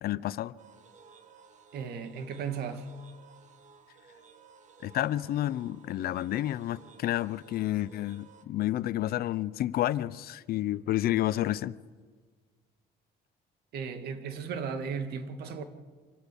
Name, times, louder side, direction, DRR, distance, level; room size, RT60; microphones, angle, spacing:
voice 1, 0.0-0.5 4.8-11.7, left 14 dB, 65° left, 0.7 m, -30 dB
sound 1, 0.6-8.4, right 6 dB, 45° right, 1.8 m, -56 dB
voice 2, 1.7-2.9 13.7-15.6, right 6 dB, 70° right, 2.2 m, -35 dB
25.5 x 17.0 x 7.1 m
cardioid pair, 110°, 17 cm